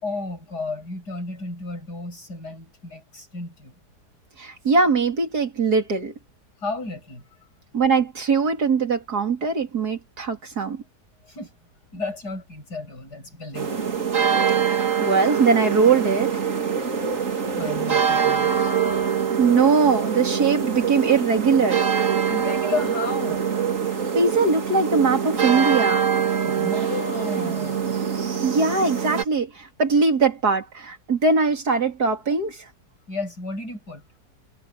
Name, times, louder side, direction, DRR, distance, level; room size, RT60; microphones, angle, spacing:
voice 1, 0.0-3.7 6.6-7.2 11.3-11.5 11.9-14.2 17.6-18.7 22.3-23.5 26.4-27.9 33.1-34.0, left 3 dB, 85° left, 7.8 m, -33 dB
voice 2, 4.4-6.1 7.7-10.8 14.6-16.4 19.4-21.8 24.1-26.0 28.4-32.6, right 4 dB, 75° right, 3.7 m, -21 dB
sound 1, 13.5-29.2, right 7 dB, 50° right, 2.3 m, -24 dB
omnidirectional pair, 1.7 m